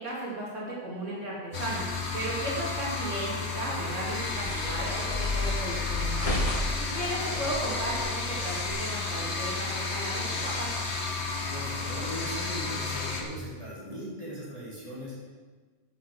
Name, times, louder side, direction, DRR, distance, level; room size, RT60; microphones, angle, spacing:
voice 1, 0.0-6.3 6.8-10.8, right 1 dB, 85° right, -6 dB, 3.0 m, -35 dB
sound 1, 1.5-13.2, left 3 dB, 65° left, 1.7 m, -32 dB
sound 2, 3.7-8.7, left 2 dB, 30° left, 1.4 m, -33 dB
voice 2, 11.5-15.1, equal, 30° right, -8 dB, 4.4 m, -39 dB
11.5 x 6.9 x 6.6 m, 1.4 s
omnidirectional pair, 1.2 m